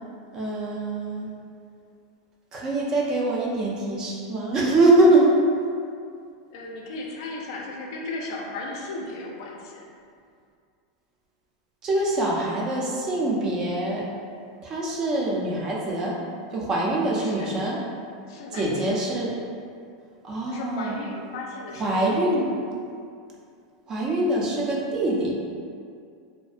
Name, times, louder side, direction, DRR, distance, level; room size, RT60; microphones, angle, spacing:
voice 1, 0.3-1.3 2.5-5.3 11.8-14.0 14.6-16.2 16.5-17.8 18.5-19.3 20.2-21.0 21.8-22.5 23.9-25.3, right 2 dB, 25° right, -3 dB, 0.3 m, -23 dB
voice 2, 6.5-9.9 17.1-17.6 18.3-19.1 20.4-22.5, left 2 dB, 65° left, -1 dB, 0.4 m, -36 dB
2.4 x 2.1 x 2.5 m, 2.3 s
supercardioid pair, 160°, 3 cm